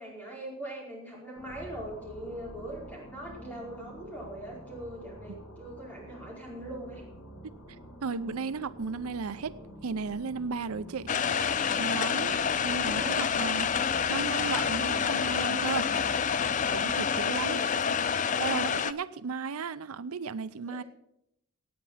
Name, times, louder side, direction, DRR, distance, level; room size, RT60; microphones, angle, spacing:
voice 1, 0.0-7.0 12.6-13.2 17.2-17.7 20.7-20.8, right 1 dB, 5° left, 4.7 m, -42 dB
sound 1, 1.4-17.6, right 1 dB, 75° left, 2.7 m, -47 dB
voice 2, 8.0-9.5 9.8-11.1 11.8-12.4 12.6-13.7 14.1-15.9 16.7-17.6 18.4-20.8, right 5 dB, 90° right, 0.6 m, -34 dB
sound 2, 11.1-18.9, left 7 dB, 35° left, 0.4 m, -28 dB
17.5 x 8.5 x 5.7 m
head